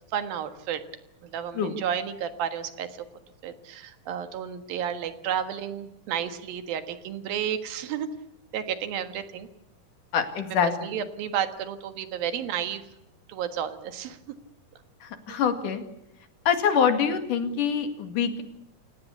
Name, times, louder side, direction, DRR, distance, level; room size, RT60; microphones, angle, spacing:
voice 1, 0.1-0.8 1.2-3.1 3.4-8.1 8.5-9.5 10.5-12.8 13.3-14.2 15.3-15.4, right 9 dB, 90° right, 10 dB, 3.4 m, -32 dB
voice 2, 10.1-10.7 15.0-15.8 16.5-18.4, left 7 dB, 65° left, 8 dB, 3.6 m, -25 dB
29.0 x 17.0 x 8.4 m, 0.81 s
omnidirectional pair, 4.0 m